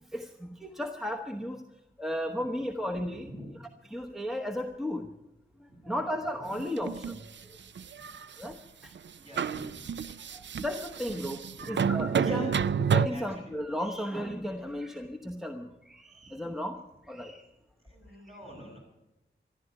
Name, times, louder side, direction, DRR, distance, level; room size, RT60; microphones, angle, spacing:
voice 1, 0.1-1.6 2.0-3.3 3.9-5.1 5.8-7.3 8.4-8.6 8.8-8.9 10.3-12.5 12.8-16.8 17.1-17.4, equal, ahead, 3 dB, 1.0 m, -34 dB
voice 2, 3.1-3.5 5.7-5.9 8.1-8.2 9.2-9.9 11.5-11.8 12.2-12.6 13.1-13.4 16.2-16.3 17.8-18.8, equal, 30° right, -2 dB, 7.9 m, -46 dB
sound 1, 6.6-7.2 7.8-8.5 8.9-9.1 9.3-13.1, right 7 dB, 70° right, 0.5 m, -30 dB
14.0 x 11.5 x 8.7 m, 0.98 s
wide cardioid pair, 85°, 20 cm